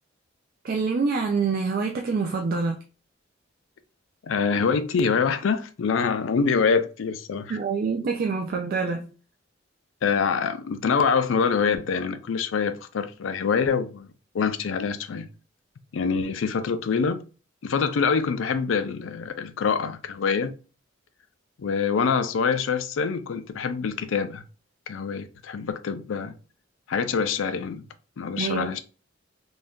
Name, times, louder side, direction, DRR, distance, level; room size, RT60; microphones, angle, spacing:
voice 1, 0.6-2.8 7.5-9.1 28.4-28.7, right 4 dB, 50° right, 0.4 m, -26 dB
voice 2, 4.2-7.5 10.0-14.1 14.3-15.3 15.9-17.2 17.6-20.5 21.6-24.4 24.9-26.3 26.9-27.8 28.2-28.8, left 5 dB, 85° left, 0.4 m, -25 dB
2.6 x 2.3 x 3.4 m
head